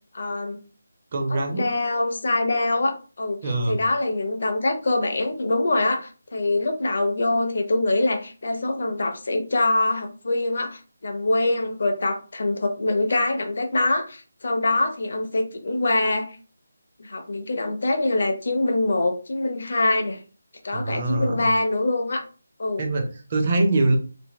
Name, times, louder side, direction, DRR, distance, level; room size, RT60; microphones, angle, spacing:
voice 1, 0.1-0.6 1.3-16.3 17.0-20.2 20.6-22.2 22.6-22.8, left 2 dB, 40° left, 5 dB, 0.5 m, -24 dB
voice 2, 1.1-1.8 3.4-3.8 20.7-21.4 22.8-24.0, right 2 dB, 20° right, 2 dB, 0.4 m, -23 dB
2.6 x 2.5 x 3.0 m, 0.36 s
figure-of-eight pair, 180°, 0 cm